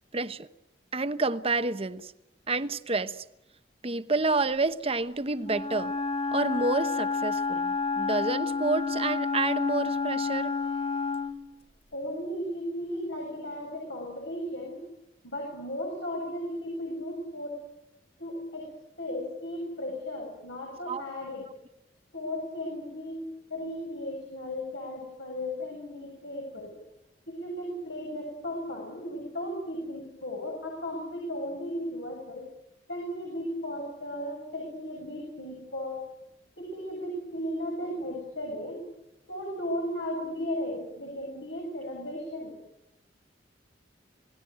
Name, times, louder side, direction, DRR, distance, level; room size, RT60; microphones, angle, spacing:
voice 1, 0.1-0.5 0.9-2.1 2.5-3.2 3.8-5.9 6.3-10.5 20.9-21.0, right 3 dB, 30° right, 1.0 m, -29 dB
Wind instrument woodwind instrument, 5.4-11.4, left 4 dB, 35° left, 2.6 m, -29 dB
voice 2, 11.9-14.8 15.2-17.6 18.2-18.7 19.0-21.5 22.1-23.2 23.5-26.7 27.3-32.5 32.9-36.0 36.6-38.8 39.3-42.6, equal, 75° left, 7.6 m, -35 dB
28.5 x 18.5 x 9.3 m
head